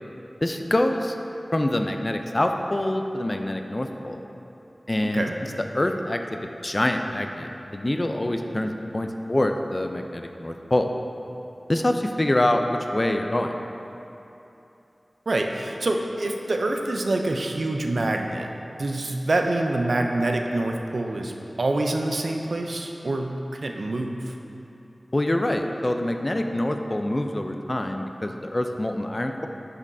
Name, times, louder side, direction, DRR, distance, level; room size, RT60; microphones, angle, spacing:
voice 1, 0.4-1.2 1.5-4.2 4.9-5.3 5.7-10.9 11.7-13.5 25.1-29.5, left 1 dB, 35° left, 5 dB, 0.4 m, -25 dB
voice 2, 5.0-5.4 15.3-18.5 18.8-21.3 21.6-24.3, right 2 dB, 80° right, 3 dB, 0.4 m, -26 dB
8.4 x 5.3 x 2.6 m, 2.9 s
wide cardioid pair, 65°, 0 cm